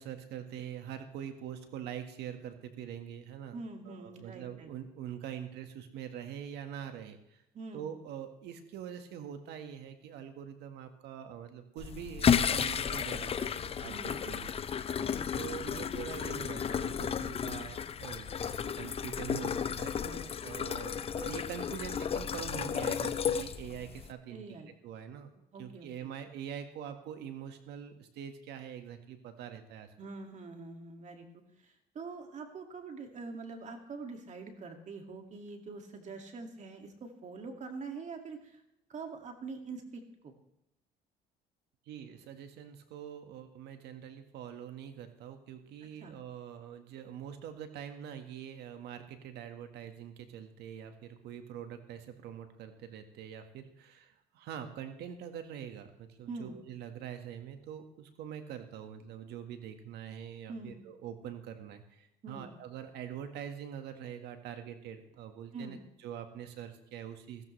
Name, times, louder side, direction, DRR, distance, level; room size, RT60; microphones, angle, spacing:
voice 1, 0.0-3.6 3.8-7.4 7.7-13.5 13.8-13.9 14.2-14.5 15.3-29.9 41.9-67.4, right 9 dB, 80° right, 7 dB, 1.7 m, -44 dB
voice 2, 3.5-4.7 7.5-7.9 13.9-14.2 15.0-15.3 20.0-20.5 24.3-24.7 25.5-26.1 30.0-31.3 31.6-38.6 38.9-40.3 46.0-46.2 56.3-56.5 60.5-60.8 62.2-62.5 65.5-65.8, right 4 dB, 45° right, 4 dB, 2.3 m, -44 dB
sound 1, 11.8-24.1, left 7 dB, 35° left, 0.6 m, -33 dB
15.5 x 14.5 x 3.3 m, 0.83 s
cardioid pair, 110°, 17 cm